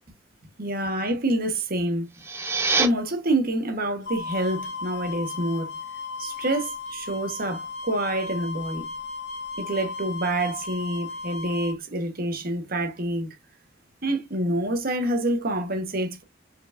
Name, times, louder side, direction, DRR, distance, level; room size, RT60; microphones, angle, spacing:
voice 1, 0.6-2.1 2.8-5.8 6.2-8.9 9.6-13.3 14.0-16.2, right 1 dB, 50° right, 1.1 m, -27 dB
sound 1, 2.0-2.9, right 3 dB, 10° right, 0.9 m, -24 dB
sound 2, 4.1-11.8, left 4 dB, 60° left, 1.3 m, -35 dB
4.6 x 4.6 x 2.5 m
head